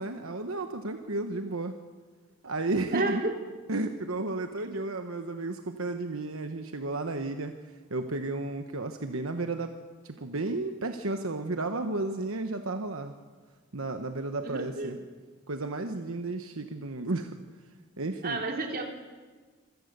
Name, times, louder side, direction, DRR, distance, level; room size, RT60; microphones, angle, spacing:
voice 1, 0.0-1.8 2.4-3.2 3.7-9.8 10.0-13.1 13.7-15.0 15.5-17.4 18.0-18.4, right 2 dB, 75° right, 6 dB, 1.1 m, -33 dB
voice 2, 2.9-3.4 14.4-15.0 18.2-18.8, right 2 dB, 45° right, 2 dB, 2.9 m, -31 dB
27.0 x 16.0 x 6.8 m, 1.5 s
head